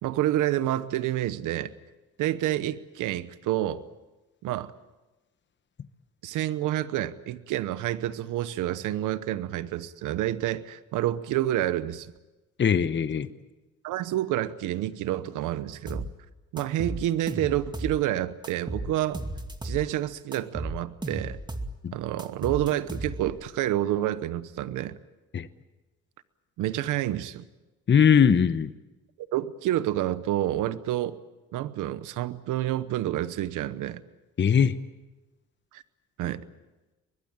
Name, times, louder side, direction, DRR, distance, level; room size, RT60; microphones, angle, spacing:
voice 1, 0.0-1.7 2.2-3.8 4.4-4.7 6.2-12.1 13.8-16.1 16.5-19.2 19.6-21.4 21.9-25.0 26.6-27.4 29.3-31.1 31.5-34.0 35.7-35.8 36.2-36.4, right 13 dB, 90° right, 14 dB, 1.0 m, -28 dB
voice 2, 12.6-13.3 21.8-21.9 25.3-25.5 27.9-28.7 34.4-34.7, left 7 dB, 40° left, 12 dB, 1.1 m, -20 dB
sound 1, 15.9-16.1 16.6-18.0 18.4-19.9 20.3-21.7 22.2-23.4, right 1 dB, 15° right, 2.4 m, -34 dB
23.5 x 21.0 x 8.9 m, 1.1 s
cardioid pair, 90°, 30 cm